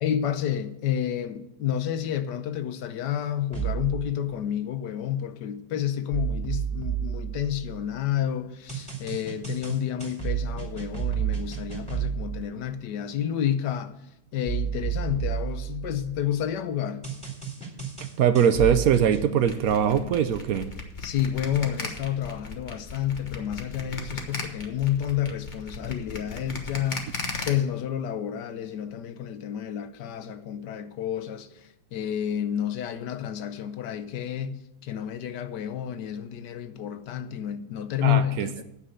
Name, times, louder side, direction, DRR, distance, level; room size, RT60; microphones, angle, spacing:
voice 1, 0.0-14.0 14.3-17.0 21.0-27.1 27.5-38.6, left 10 dB, 85° left, 1.4 m, -30 dB
sound 1, 3.5-4.1 6.1-8.0 8.7-12.4 14.5-16.3 17.0-19.3, right 9 dB, 5° left, 2.6 m, -31 dB
voice 2, 18.2-20.7 38.0-38.6, right 8 dB, 70° right, 1.0 m, -22 dB
sound 2, 19.5-27.5, left 3 dB, 30° left, 1.3 m, -36 dB
9.7 x 6.7 x 7.7 m
omnidirectional pair, 1.8 m